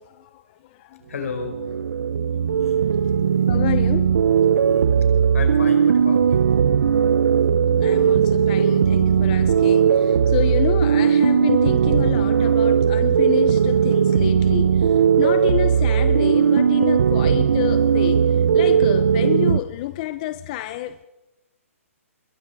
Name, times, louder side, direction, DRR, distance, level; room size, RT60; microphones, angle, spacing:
voice 1, 0.0-1.0 2.5-3.0 3.5-4.1 7.7-21.1, left 14 dB, 30° left, 0.6 m, -29 dB
voice 2, 1.1-1.5 3.1-3.4 5.3-6.5 6.7-6.9, left 5 dB, 75° left, 5.0 m, -32 dB
sound 1, 1.2-19.6, right 7 dB, 70° right, 0.8 m, -18 dB
26.0 x 21.5 x 4.7 m
hypercardioid pair, 155°, 8 cm